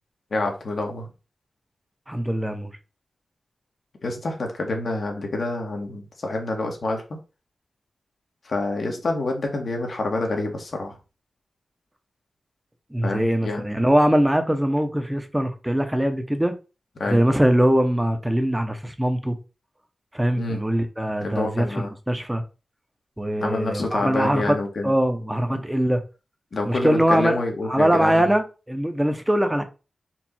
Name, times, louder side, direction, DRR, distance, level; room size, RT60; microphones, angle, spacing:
voice 1, 0.3-1.1 4.0-7.0 8.5-11.0 13.0-13.7 17.0-17.2 20.4-20.6 21.2-21.9 23.4-24.9 25.5-25.6 26.5-28.2, left 2 dB, 65° left, 1.4 m, -27 dB
voice 2, 2.1-2.7 12.9-16.5 17.1-19.4 20.1-22.4 23.2-24.6 24.8-26.0 26.6-27.4 27.6-29.6, equal, 10° right, 0.9 m, -22 dB
4.5 x 2.6 x 4.3 m
cardioid pair, 60°, 0 cm